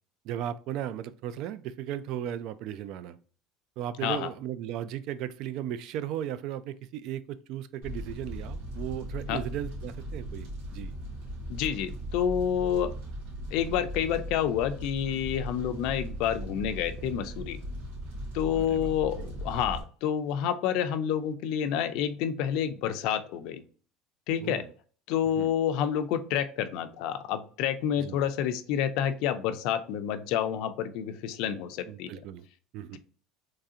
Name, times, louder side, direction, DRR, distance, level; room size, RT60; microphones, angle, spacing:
voice 1, 0.2-3.2 3.8-10.9 15.6-15.8 18.5-18.9 19.2-19.3 24.4-24.7 25.4-25.5 28.0-28.2 31.9-32.5 32.7-33.0, right 10 dB, 50° right, 14 dB, 0.3 m, -36 dB
Fire, 7.8-19.8, equal, 90° right, 1.8 m, -38 dB
voice 2, 11.5-12.9 13.5-17.6 18.3-23.6 24.3-24.6 25.1-32.1, left 9 dB, 60° left, 10 dB, 0.4 m, -29 dB
3.7 x 3.2 x 2.7 m, 0.42 s
cardioid pair, 165°, 0 cm